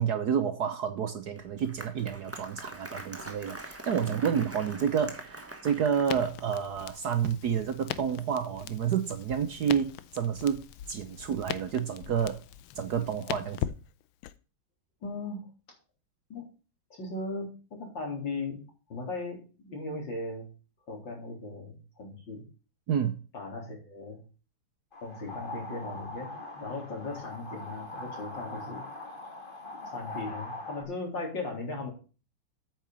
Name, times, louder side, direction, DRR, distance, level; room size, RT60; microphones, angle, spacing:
voice 1, 0.0-10.6 10.9-12.4 12.8-13.6 22.9-23.2, right 8 dB, 60° right, 9 dB, 1.2 m, -29 dB
Applause, 1.4-6.8, right 1 dB, 10° right, 0.9 m, -44 dB
voice 2, 3.9-4.3 15.0-15.5 16.3-16.4 16.9-18.6 18.9-20.5 20.9-22.4 23.3-24.2 25.0-28.8 29.7-31.9, left 3 dB, 60° left, 0 dB, 4.4 m, -38 dB
Crackle, 6.0-14.3, left 12 dB, 80° left, 1.5 m, -40 dB
sound 1, 24.9-30.8, left 2 dB, 25° left, 1.6 m, -41 dB
8.8 x 5.9 x 7.3 m, 0.35 s
omnidirectional pair, 2.3 m